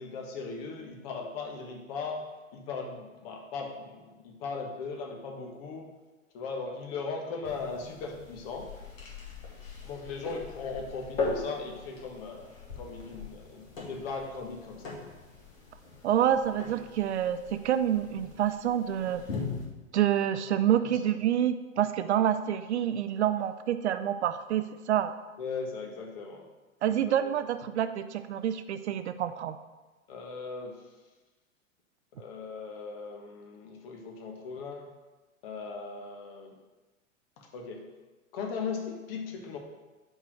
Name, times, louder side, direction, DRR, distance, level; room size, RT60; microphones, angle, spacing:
voice 1, 0.0-2.2 2.5-5.9 6.3-8.7 9.8-14.9 20.8-21.0 25.4-26.4 26.9-27.1 30.1-30.9 32.1-34.9 35.4-36.5 37.4-37.8 38.3-39.6, left 4 dB, 45° left, 2 dB, 1.3 m, -38 dB
sound 1, 7.4-19.7, left 4 dB, 70° left, 2.1 m, -40 dB
voice 2, 16.0-19.2 19.9-25.1 26.8-29.6, right 10 dB, 60° right, 11 dB, 0.5 m, -27 dB
5.4 x 4.8 x 6.2 m, 1.2 s
figure-of-eight pair, 95°, 40 cm